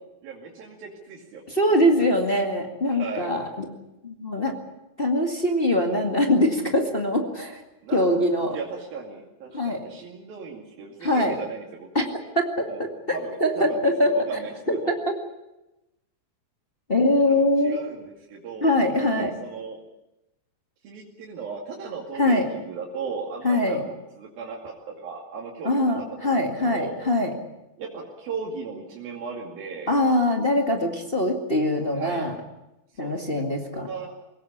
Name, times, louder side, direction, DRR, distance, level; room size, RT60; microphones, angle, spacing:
voice 1, 0.2-2.0 2.9-3.3 7.8-12.0 12.7-12.8 13.1-14.8 17.3-19.8 20.8-25.9 26.2-26.9 27.8-29.9 31.9-32.3 32.9-33.1 33.7-34.1, right 5 dB, 85° right, -3 dB, 4.3 m, -37 dB
voice 2, 1.5-3.6 4.0-4.5 5.0-7.6 7.9-8.6 9.5-9.8 11.0-11.3 11.9-12.0 12.3-14.1 14.7-15.1 16.9-17.8 18.6-19.3 22.2-22.5 23.4-23.8 25.6-27.3 29.9-32.3 33.0-33.9, left 1 dB, 20° left, 2 dB, 1.6 m, -23 dB
22.5 x 18.5 x 8.6 m, 0.94 s
omnidirectional pair, 4.1 m